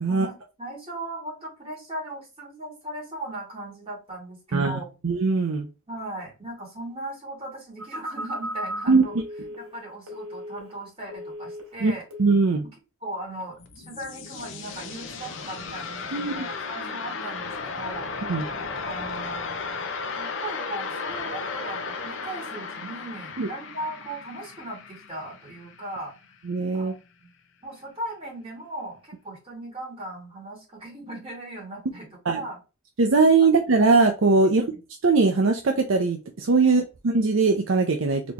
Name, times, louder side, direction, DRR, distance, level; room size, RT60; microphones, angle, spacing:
voice 1, 0.1-4.9 5.9-9.2 9.6-12.0 13.0-18.1 18.8-19.7 20.2-26.1 26.7-27.3 27.6-32.6 33.4-33.5 34.5-34.8 36.6-36.8, right 1 dB, 25° right, -3 dB, 2.3 m, -38 dB
voice 2, 4.5-5.7 8.9-9.0 11.8-11.9 12.2-12.6 16.1-16.4 18.3-18.4 23.4-23.5 26.5-26.9 32.3-32.4 33.0-34.6 35.0-38.2, right 3 dB, 60° right, 4 dB, 0.6 m, -20 dB
Telephone, 7.8-10.8 11.1-11.8 12.1-12.4, equal, 75° right, 2.0 m, -36 dB
sound 1, 13.4-26.3, left 4 dB, 60° left, 0.7 m, -35 dB
4.1 x 2.9 x 3.2 m, 0.30 s
head